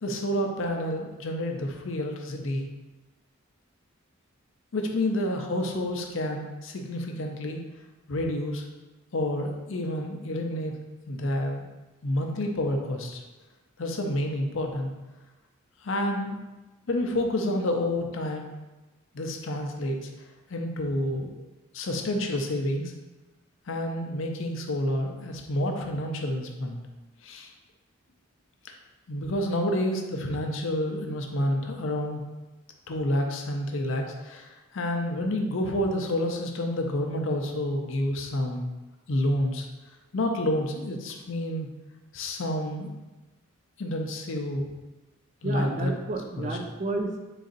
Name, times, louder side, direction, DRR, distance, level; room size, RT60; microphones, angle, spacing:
voice 1, 0.0-2.7 4.7-7.7 8.1-8.6 9.1-10.7 11.1-11.6 12.0-13.2 13.8-14.9 15.8-16.4 16.9-18.5 19.1-20.1 20.5-21.4 21.7-22.9 23.7-26.8 27.2-27.5 29.1-32.2 32.9-38.7 39.1-39.7 40.1-41.7 42.1-42.9 43.8-44.7 45.4-45.9 46.4-46.6, left 1 dB, 60° left, 3 dB, 0.5 m, -29 dB
voice 2, 45.4-47.2, right 2 dB, 35° right, 3 dB, 0.4 m, -31 dB
3.9 x 2.5 x 3.9 m, 1.1 s
head